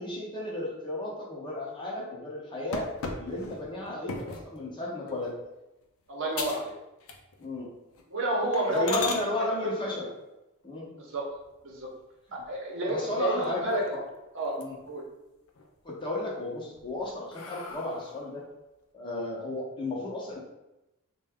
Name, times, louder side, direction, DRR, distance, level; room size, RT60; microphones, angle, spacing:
voice 1, 0.0-2.9 3.2-5.3 7.4-7.7 8.7-10.1 10.6-10.9 12.9-14.0 14.6-14.8 15.8-18.4 18.9-20.4, left 2 dB, 20° left, -3 dB, 0.8 m, -34 dB
sound 1, 2.7-4.5 5.1-5.4 5.8-5.9 6.3-6.7 7.0-7.5 7.9-8.0 8.5-9.2 11.2-11.9 12.4-12.5 12.9-13.0 13.3-14.1 14.4-15.0 15.4-16.1 16.6-18.3, left 4 dB, 70° left, 0.5 m, -38 dB
voice 2, 6.1-6.7 8.1-9.1 9.6-9.7 10.9-11.3 11.6-11.9 12.5-13.8 14.3-14.6 14.9-15.0, right 1 dB, 60° right, -2 dB, 0.8 m, -29 dB
3.7 x 2.2 x 3.5 m, 0.96 s
head